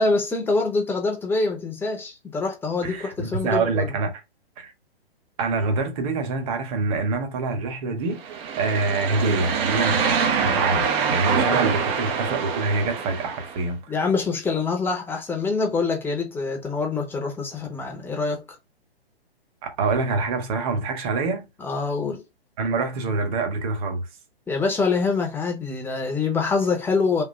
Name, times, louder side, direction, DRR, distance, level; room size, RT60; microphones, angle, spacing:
voice 1, 0.0-4.0 11.3-11.7 13.9-18.6 21.6-22.2 24.5-27.2, left 4 dB, 5° left, 0.8 m, -25 dB
voice 2, 2.8-4.2 4.6-4.7 5.4-13.8 19.6-21.4 22.6-24.1, right 3 dB, 35° right, 1.3 m, -26 dB
sound 1, 8.2-13.6, right 6 dB, 20° right, 0.6 m, -25 dB
3.8 x 2.7 x 4.4 m
hypercardioid pair, 130°, 31 cm